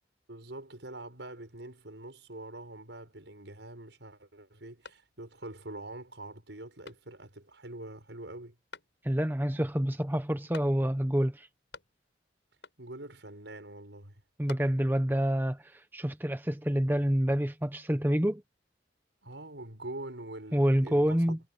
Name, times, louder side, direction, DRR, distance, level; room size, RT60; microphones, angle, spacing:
voice 1, 0.3-8.6 12.8-14.1 19.2-21.4, right 2 dB, 85° right, 6.3 m, -44 dB
sound 1, 4.8-5.5 5.9-6.0 6.8-7.5 8.7-9.3 10.5-11.1 11.4-12.2 12.6-13.1 14.1-15.1, left 4 dB, 80° left, 7.2 m, -51 dB
voice 2, 9.0-11.5 14.4-18.4 20.5-21.4, equal, 10° right, 1.0 m, -27 dB
head